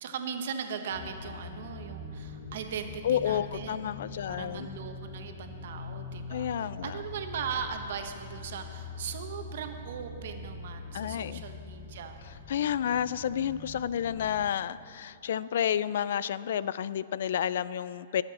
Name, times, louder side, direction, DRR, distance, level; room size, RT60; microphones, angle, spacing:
voice 1, 0.0-3.9 4.2-12.4, right 7 dB, 60° right, 6 dB, 1.2 m, -39 dB
sound 1, 0.9-14.5, left 3 dB, 40° left, 1.1 m, -43 dB
voice 2, 3.0-4.8 6.3-7.0 10.9-11.4 12.5-18.2, left 9 dB, 65° left, 18 dB, 0.3 m, -30 dB
23.0 x 7.9 x 4.3 m, 2.6 s
hypercardioid pair, 150°, 0 cm